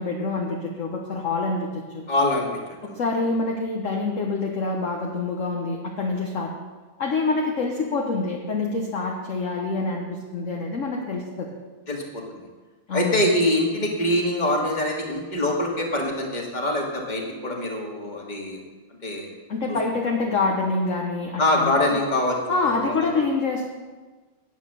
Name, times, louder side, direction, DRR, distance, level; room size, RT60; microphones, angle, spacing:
voice 1, 0.0-2.0 2.8-6.5 7.0-11.5 12.9-13.2 19.5-22.0 22.5-23.7, left 3 dB, 45° left, 0 dB, 1.2 m, -26 dB
voice 2, 2.1-2.5 2.9-3.0 11.9-12.4 12.9-18.6 19.0-19.3 19.7-19.8 21.4-23.2, left 1 dB, 20° left, 0 dB, 1.8 m, -24 dB
9.7 x 9.1 x 6.8 m, 1.3 s
omnidirectional pair, 2.3 m